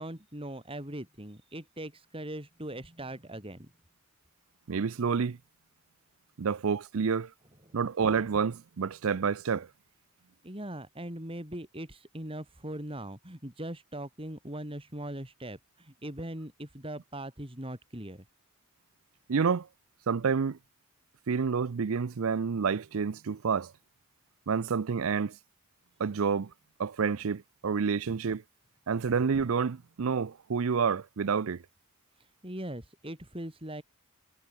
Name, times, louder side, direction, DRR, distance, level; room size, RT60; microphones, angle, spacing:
voice 1, 0.0-3.7 7.7-7.8 10.4-18.2 32.2-33.8, right 1 dB, 25° right, 4.5 m, -40 dB
voice 2, 4.7-5.4 6.4-7.3 7.7-9.7 19.3-19.7 20.1-20.6 21.3-23.7 24.5-25.4 26.0-26.5 26.8-28.4 28.9-31.6, right 6 dB, 70° right, 0.5 m, -29 dB
head